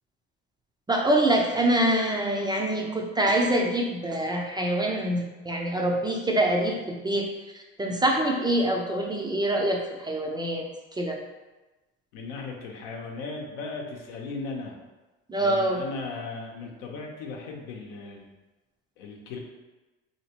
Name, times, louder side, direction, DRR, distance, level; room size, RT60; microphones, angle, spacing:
voice 1, 0.9-7.3 7.8-10.6 11.0-11.2 15.3-15.8, right 1 dB, 15° right, 0 dB, 0.4 m, -25 dB
voice 2, 12.1-14.7 15.4-18.3 19.0-19.4, left 3 dB, 80° left, 0 dB, 0.8 m, -37 dB
3.3 x 2.9 x 2.9 m, 1.1 s
supercardioid pair, 90°, 33 cm